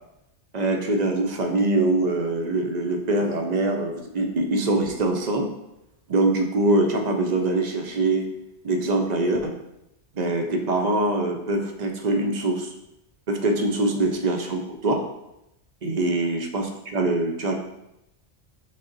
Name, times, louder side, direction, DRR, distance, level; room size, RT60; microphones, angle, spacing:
voice 1, 0.5-5.5 6.1-8.3 8.6-9.5 10.1-12.7 13.3-15.0 15.8-17.5, right 2 dB, 50° right, 3 dB, 0.6 m, -23 dB
6.2 x 2.1 x 3.8 m, 0.86 s
omnidirectional pair, 1.1 m